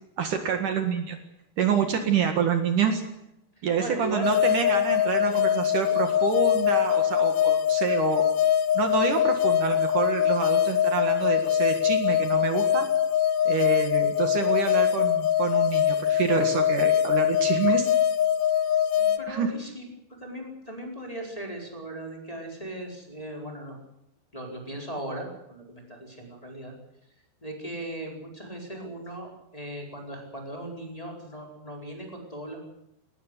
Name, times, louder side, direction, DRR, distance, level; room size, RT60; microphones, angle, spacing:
voice 1, 0.2-1.2 1.6-3.0 3.6-8.2 8.7-12.9 13.5-17.9 19.3-19.5, right 6 dB, 60° right, 6 dB, 3.2 m, -27 dB
voice 2, 3.6-4.4 5.3-5.4 18.9-23.8 24.3-26.7 27.4-32.7, right 1 dB, 10° left, 0 dB, 4.6 m, -38 dB
sound 1, 4.2-19.2, left 10 dB, 70° left, 2.8 m, -23 dB
21.0 x 19.5 x 8.2 m, 0.82 s
omnidirectional pair, 4.3 m